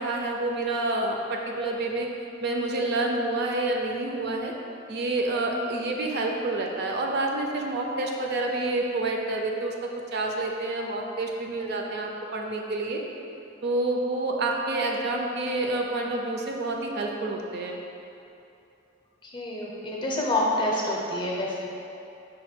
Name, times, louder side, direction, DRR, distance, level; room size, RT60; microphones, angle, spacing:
voice 1, 0.0-2.1 2.4-4.5 4.9-13.0 13.6-17.8, right 2 dB, 55° right, 1 dB, 0.4 m, -28 dB
voice 2, 19.2-21.7, left 1 dB, 25° left, -3 dB, 0.6 m, -28 dB
5.1 x 2.2 x 4.3 m, 2.7 s
head